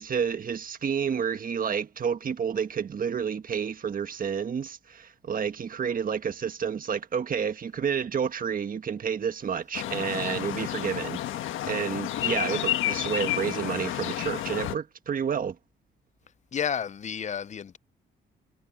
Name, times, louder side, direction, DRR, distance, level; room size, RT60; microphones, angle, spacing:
voice 1, 0.0-15.5, right 7 dB, 45° right, 1.6 m, -30 dB
sound 1, 9.7-14.8, left 13 dB, 80° left, 1.4 m, -30 dB
voice 2, 16.5-17.8, left 8 dB, 35° left, 0.6 m, -31 dB
cardioid pair, 90°, 20 cm